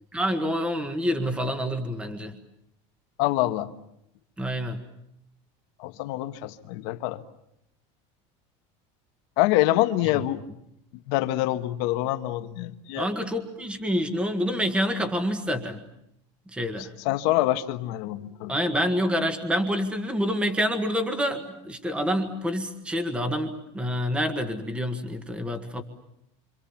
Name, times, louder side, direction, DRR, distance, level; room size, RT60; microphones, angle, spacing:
voice 1, 0.1-2.4 4.4-4.8 13.0-15.8 16.5-16.9 18.5-25.8, equal, 5° right, 7 dB, 1.7 m, -27 dB
voice 2, 3.2-3.7 5.8-7.2 9.4-10.4 11.1-13.1 17.0-18.5, left 16 dB, 55° left, 8 dB, 1.5 m, -25 dB
28.0 x 26.5 x 7.2 m, 0.79 s
cardioid pair, 180°, 16 cm